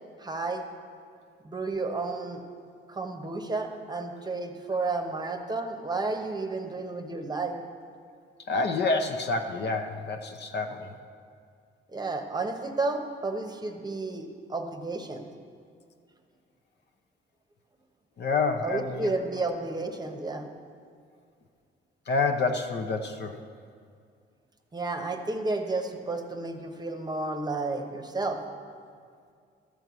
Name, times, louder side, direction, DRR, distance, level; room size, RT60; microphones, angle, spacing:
voice 1, 0.2-0.6 1.4-2.4 2.9-7.6 11.9-15.3 18.6-20.5 24.7-28.4, right 3 dB, 20° right, 5 dB, 0.9 m, -32 dB
voice 2, 8.5-10.9 18.2-19.1 22.1-23.4, left 3 dB, 60° left, 6 dB, 0.9 m, -28 dB
12.5 x 4.6 x 8.2 m, 2.2 s
cardioid pair, 90°, 20 cm